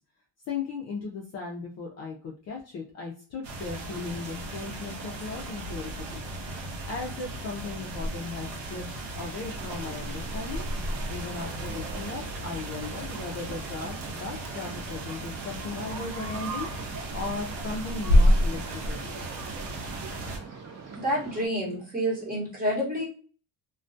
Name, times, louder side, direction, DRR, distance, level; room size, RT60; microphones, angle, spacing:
voice 1, 0.5-6.2 6.8-8.9 9.2-10.7 11.1-16.7 17.1-19.2, left 4 dB, 40° left, -1 dB, 0.4 m, -37 dB
sound 1, 3.4-20.4, equal, 80° right, 0.9 m, -31 dB
sound 2, 9.3-21.5, right 5 dB, 40° right, 0.5 m, -43 dB
voice 2, 20.9-23.1, equal, 20° right, -5 dB, 1.1 m, -28 dB
2.2 x 2.2 x 2.5 m, 0.40 s
cardioid pair, 160°, 44 cm